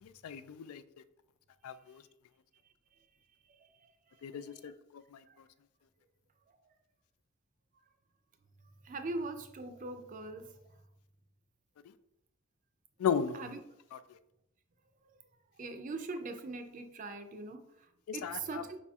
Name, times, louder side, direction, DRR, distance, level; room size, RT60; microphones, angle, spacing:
voice 1, 0.0-0.8 1.6-2.0 4.2-5.2 13.0-13.6 13.9-14.0 18.1-18.7, left 7 dB, 85° left, 0.3 m, -36 dB
voice 2, 3.5-3.9 4.3-4.7 5.3-5.4 8.8-10.5 13.3-13.6 15.6-17.9 18.1-18.8, right 3 dB, 35° right, 0.4 m, -41 dB
5.0 x 4.2 x 2.3 m
head